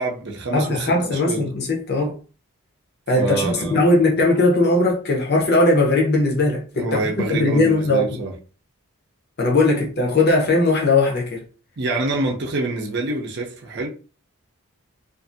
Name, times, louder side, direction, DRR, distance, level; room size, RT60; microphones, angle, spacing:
voice 1, 0.0-1.4 3.2-3.8 6.7-8.3 11.8-13.9, right 2 dB, 50° right, 0.6 m, -26 dB
voice 2, 0.5-2.2 3.1-7.0 7.3-8.2 9.4-11.4, left 2 dB, 45° left, 0.7 m, -19 dB
2.5 x 2.5 x 2.6 m
head